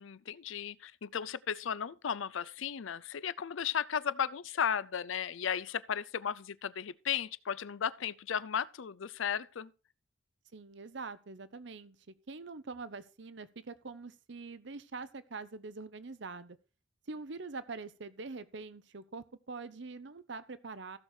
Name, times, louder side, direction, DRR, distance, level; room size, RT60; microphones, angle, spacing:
voice 1, 0.0-9.7, left 8 dB, 75° left, 0.5 m, -35 dB
voice 2, 10.5-12.0 12.3-16.6 17.1-21.0, right 4 dB, 65° right, 0.8 m, -44 dB
15.0 x 6.5 x 4.4 m
head